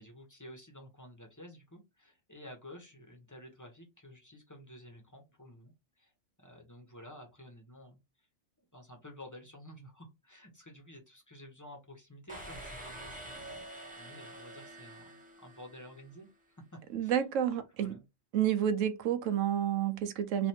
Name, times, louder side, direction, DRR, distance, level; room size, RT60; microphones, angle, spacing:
voice 1, 0.0-6.1 6.4-8.3 8.7-13.4 14.0-16.6 17.0-17.1 17.8-18.0, equal, 15° left, 1.1 m, -52 dB
sound 1, 12.3-16.1, right 1 dB, 5° right, 1.3 m, -47 dB
voice 2, 16.9-18.0 18.3-20.5, right 10 dB, 90° right, 1.0 m, -30 dB
3.3 x 2.7 x 4.2 m
omnidirectional pair, 1.3 m